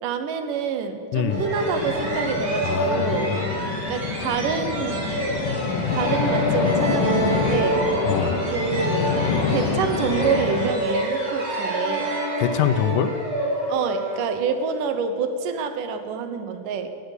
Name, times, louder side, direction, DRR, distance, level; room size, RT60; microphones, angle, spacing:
voice 1, 0.0-3.3 3.9-5.1 5.9-7.8 8.5-9.1 9.5-12.2 13.7-16.9, right 6 dB, 90° right, 8 dB, 2.7 m, -27 dB
voice 2, 1.1-1.4 2.6-3.5 8.1-8.4 12.4-13.2, left 9 dB, 85° left, 11 dB, 2.3 m, -24 dB
sound 1, 1.3-10.7, left 5 dB, 65° left, 1.2 m, -27 dB
sound 2, 1.3-14.8, right 1 dB, 40° right, 4.1 m, -27 dB
18.0 x 7.7 x 8.2 m, 2.5 s
omnidirectional pair, 3.6 m